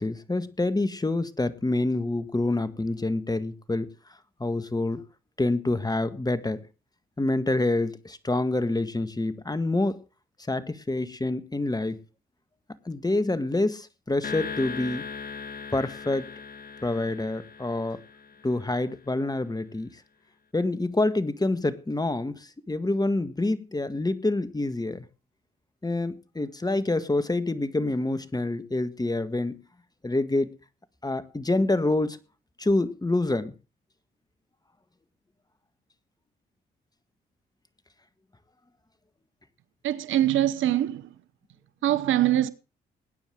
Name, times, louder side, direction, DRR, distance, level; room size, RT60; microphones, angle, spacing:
voice 1, 0.0-3.9 4.4-5.0 5.4-6.6 7.2-10.0 10.5-12.0 12.8-15.0 15.7-16.3 16.8-18.0 18.4-19.9 20.5-25.0 25.8-29.6 30.0-30.5 31.0-32.2 32.6-33.5, left 2 dB, 20° left, 1.8 m, -27 dB
sound 1, 14.2-18.7, left 5 dB, 45° left, 1.8 m, -38 dB
voice 2, 39.8-41.0 41.8-42.5, right 12 dB, 75° right, 1.0 m, -23 dB
19.5 x 9.7 x 3.7 m
hypercardioid pair, 45°, 20 cm